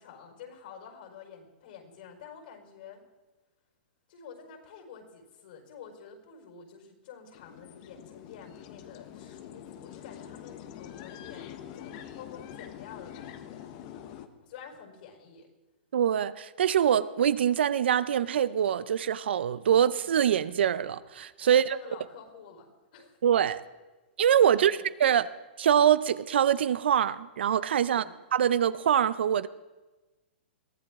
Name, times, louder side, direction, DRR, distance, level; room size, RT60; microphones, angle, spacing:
voice 1, 0.0-3.0 4.1-13.7 14.4-15.5 21.4-23.2 24.4-24.8 27.8-28.2, left 7 dB, 55° left, 4.8 m, -49 dB
sound 1, 7.3-14.3, left 10 dB, 40° left, 1.1 m, -45 dB
voice 2, 15.9-21.8 23.2-23.6 24.2-25.3 25.6-28.0 28.3-29.5, right 9 dB, 75° right, 0.7 m, -24 dB
22.5 x 15.5 x 3.7 m
hypercardioid pair, 155°, 6 cm